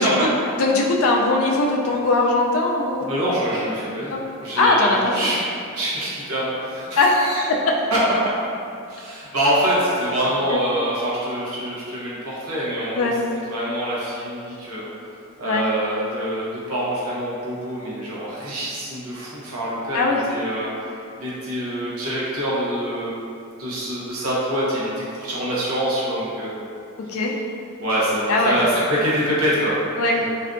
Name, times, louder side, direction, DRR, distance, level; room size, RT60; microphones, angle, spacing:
voice 1, 0.0-3.1 4.1-4.2 4.6-5.3 7.0-7.1 10.5-10.6 12.9-13.2 15.4-15.7 19.9-20.2 27.1-27.3 28.3-28.6 30.0-30.2, left 2 dB, 70° left, 0 dB, 0.3 m, -20 dB
voice 2, 3.1-4.1 4.4-5.4 5.8-7.4 7.9-8.0 8.9-14.9 15.4-20.7 21.2-26.6 27.8-29.8 30.1-30.3, right 1 dB, 85° right, -7 dB, 0.7 m, -25 dB
2.6 x 2.2 x 2.5 m, 2.6 s
head